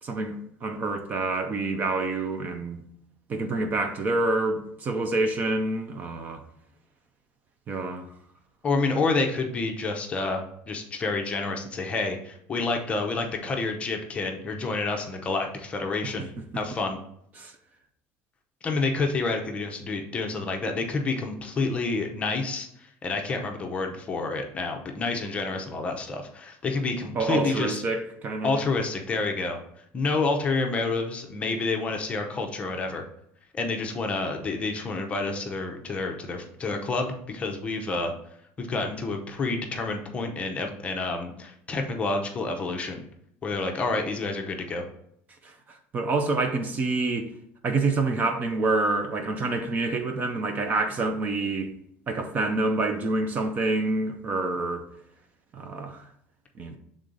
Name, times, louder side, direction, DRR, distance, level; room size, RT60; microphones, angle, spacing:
voice 1, 0.0-2.8 3.3-6.4 7.7-8.1 17.4-17.5 27.1-28.6 45.4-45.5 45.9-47.3 47.6-51.7 52.1-54.8 55.5-56.0 56.6-56.8, right 3 dB, 30° right, 0.6 m, -27 dB
voice 2, 8.6-17.0 18.6-27.8 28.4-29.6 29.9-33.0 33.5-38.1 38.6-43.0 43.4-44.8, left 3 dB, 20° left, 0.7 m, -29 dB
6.5 x 3.7 x 3.9 m
cardioid pair, 155°, 6 cm